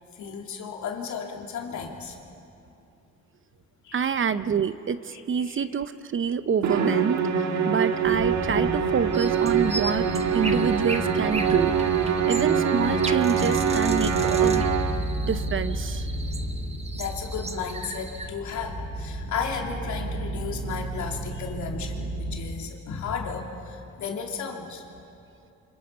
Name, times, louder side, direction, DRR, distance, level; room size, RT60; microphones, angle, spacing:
voice 1, 0.1-2.2 3.8-4.2 5.1-5.6 16.9-24.8, left 6 dB, 70° left, 1 dB, 3.0 m, -34 dB
voice 2, 3.9-10.1 10.3-11.7 12.3-14.7 15.3-16.1, right 6 dB, 40° right, 13 dB, 0.8 m, -27 dB
Musical instrument, 6.6-15.1, right 7 dB, 65° right, 1.8 m, -24 dB
sound 1, 8.0-22.4, equal, 15° left, 7.3 m, -34 dB
sound 2, 9.1-18.3, right 2 dB, 20° right, 1.3 m, -38 dB
29.0 x 25.5 x 5.7 m, 2.7 s
cardioid pair, 90°, 30 cm